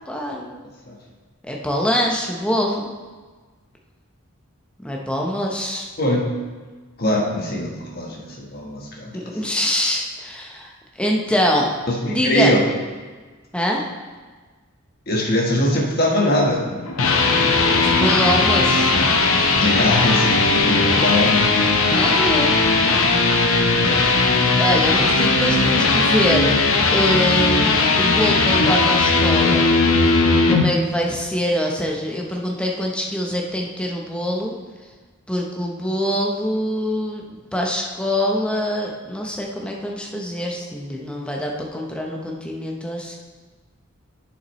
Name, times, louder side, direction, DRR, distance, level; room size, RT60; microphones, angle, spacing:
voice 1, 0.1-0.6 1.4-2.9 4.8-5.9 9.1-10.7 11.0-11.7 12.1-12.6 13.5-13.8 17.7-18.9 21.8-22.6 24.6-26.5 26.9-29.7 30.5-34.6 35.3-43.2, equal, 5° left, -1 dB, 0.7 m, -24 dB
voice 2, 6.0-6.3 7.0-9.2 12.0-12.6 15.1-16.7 19.6-21.4, left 1 dB, 45° left, -2 dB, 1.3 m, -21 dB
sound 1, 16.7-30.6, left 3 dB, 75° left, 0.8 m, -17 dB
8.4 x 6.8 x 3.1 m, 1.4 s
head